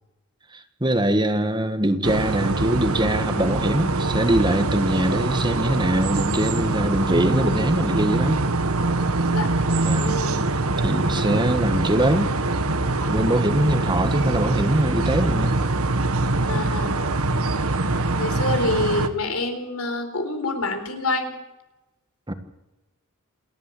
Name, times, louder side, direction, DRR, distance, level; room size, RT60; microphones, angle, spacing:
voice 1, 0.5-8.4 9.8-10.1 10.8-12.3 13.1-15.6 22.3-22.4, right 1 dB, 20° right, 9 dB, 1.7 m, -22 dB
sound 1, 2.0-19.1, right 2 dB, 80° right, 1.6 m, -24 dB
voice 2, 9.9-10.4 16.5-17.0 18.2-21.4, left 2 dB, 90° left, 6 dB, 4.2 m, -26 dB
28.5 x 11.0 x 8.6 m, 1.0 s
head